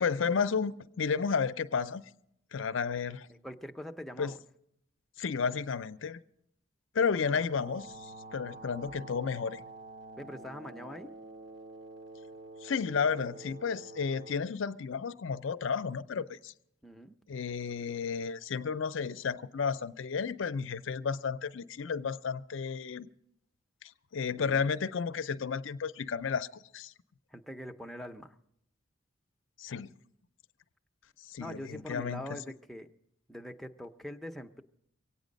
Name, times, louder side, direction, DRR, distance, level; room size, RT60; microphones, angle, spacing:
voice 1, 0.0-2.0 2.5-3.3 4.2-4.3 5.2-6.2 6.9-9.6 12.6-16.5 17.3-23.1 23.8-26.9 29.6-29.9 31.3-32.4, left 6 dB, 70° left, 0.5 m, -32 dB
voice 2, 3.4-4.4 7.2-7.4 10.2-11.2 16.8-17.2 24.4-24.7 27.3-28.3 31.4-32.9 33.3-34.6, equal, ahead, 0.5 m, -43 dB
sound 1, 7.5-14.3, right 2 dB, 60° right, 1.3 m, -48 dB
24.0 x 9.0 x 5.2 m
head